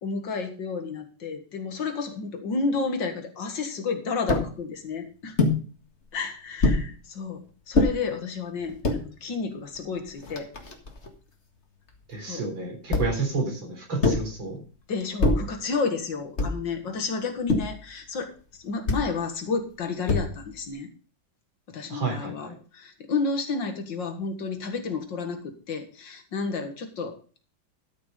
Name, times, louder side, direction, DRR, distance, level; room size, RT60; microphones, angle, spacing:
voice 1, 0.0-5.4 6.1-10.5 12.2-12.5 14.9-18.3 18.6-20.9 21.7-27.4, left 4 dB, 65° left, 6 dB, 2.3 m, -31 dB
sound 1, 4.3-4.5 5.4-5.6 6.6-6.9 7.7-7.9 8.6-9.0 9.8-9.9 10.1-11.1 12.9-13.3 14.0-14.3 15.2-15.5 16.4-16.7 17.5-17.8 18.9-19.1 20.1-20.5, left 3 dB, 35° left, 1.9 m, -24 dB
voice 2, 12.1-14.6 21.9-22.5, right 3 dB, 75° right, 2 dB, 4.5 m, -30 dB
13.0 x 6.5 x 5.2 m, 0.39 s
omnidirectional pair, 2.1 m